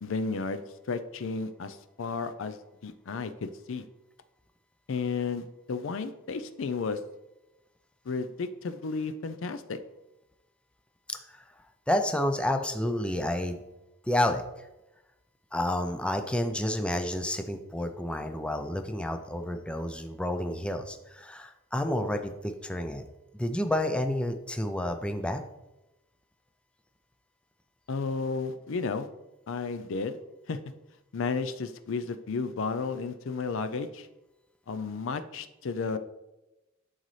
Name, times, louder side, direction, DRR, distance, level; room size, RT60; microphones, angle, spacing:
voice 1, 0.0-3.8 4.9-7.0 8.1-9.8 27.9-29.1 29.5-30.2 30.5-30.6 31.1-34.1 34.7-36.0, left 4 dB, 65° left, 10 dB, 0.5 m, -33 dB
voice 2, 11.1-11.4 11.9-13.6 14.1-14.7 15.5-23.0 23.4-25.4, left 1 dB, 5° left, 6 dB, 0.4 m, -30 dB
11.5 x 4.0 x 3.2 m, 0.97 s
head